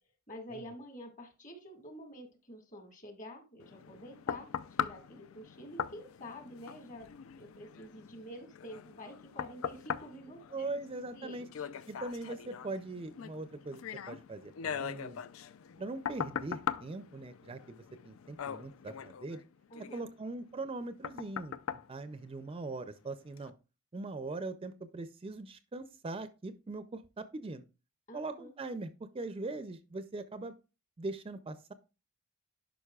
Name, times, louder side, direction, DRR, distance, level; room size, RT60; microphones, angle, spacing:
voice 1, 0.3-4.5 4.8-7.1 7.4-11.7 19.7-20.1 28.1-28.5, equal, 40° left, 4 dB, 1.8 m, -48 dB
sound 1, 3.6-22.9 23.4-23.5, left 8 dB, 85° left, 0.4 m, -41 dB
voice 2, 10.5-11.5 11.9-13.8 14.1-15.2 15.8-17.8 18.0-19.4 19.9-23.5 23.9-27.6 28.1-28.9 29.1-30.5 31.0-31.7, right 2 dB, 25° right, 11 dB, 0.4 m, -41 dB
11.0 x 5.2 x 2.3 m, 0.30 s
head